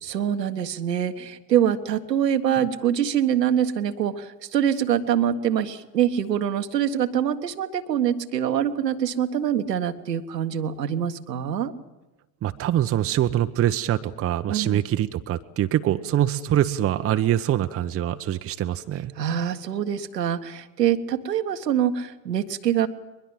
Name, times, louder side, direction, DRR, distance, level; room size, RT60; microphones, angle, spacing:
voice 1, 0.0-11.7 14.5-14.8 19.1-22.9, right 9 dB, 75° right, 8 dB, 1.6 m, -24 dB
voice 2, 12.4-19.1, right 11 dB, 25° right, 8 dB, 1.1 m, -24 dB
22.5 x 21.5 x 7.7 m, 1.0 s
figure-of-eight pair, 75°, 50 cm